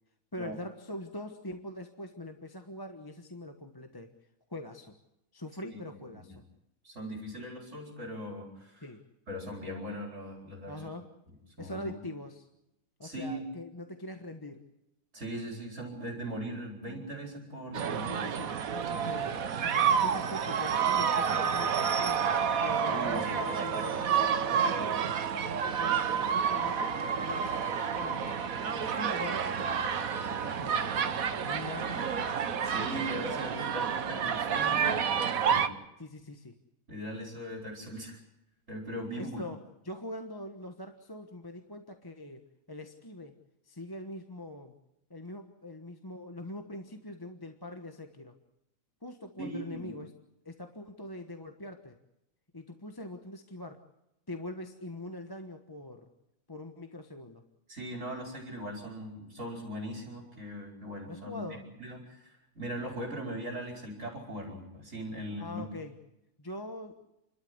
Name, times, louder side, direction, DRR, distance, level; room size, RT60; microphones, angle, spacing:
voice 1, 0.3-4.1 4.5-4.9 5.3-6.4 8.8-9.0 10.7-11.1 11.6-12.5 13.0-14.6 18.1-25.0 25.6-27.6 28.0-28.3 28.7-29.8 30.2-32.3 36.0-36.5 39.2-43.4 43.6-44.7 45.1-48.3 49.0-50.1 50.4-52.0 52.5-53.9 54.3-56.1 56.5-57.4 61.1-61.7 65.4-66.0 66.4-66.9, left 1 dB, 15° left, 5 dB, 1.2 m, -43 dB
voice 2, 6.8-8.8 9.3-10.7 11.6-11.9 13.0-13.4 15.1-18.1 22.9-23.3 32.6-35.7 36.9-38.2 38.7-39.4 49.4-49.9 57.7-61.5 61.8-65.7, equal, 60° right, 1 dB, 5.0 m, -39 dB
sound 1, 17.7-35.7, right 7 dB, 85° right, 1.5 m, -29 dB
sound 2, 23.4-28.8, right 5 dB, ahead, 1.7 m, -50 dB
29.5 x 13.0 x 9.5 m, 0.87 s
omnidirectional pair, 1.4 m